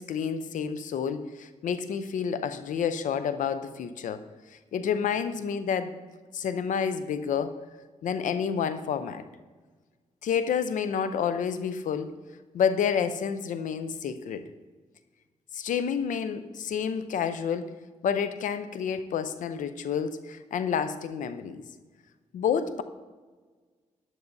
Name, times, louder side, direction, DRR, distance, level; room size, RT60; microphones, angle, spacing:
voice 1, 0.0-4.2 4.5-5.9 6.3-7.6 8.0-9.2 10.2-12.1 12.5-14.4 15.5-17.7 18.0-21.6 22.3-22.8, left 7 dB, 80° left, 11 dB, 0.6 m, -29 dB
14.0 x 11.0 x 2.7 m, 1.4 s
cardioid pair, 50°, 13 cm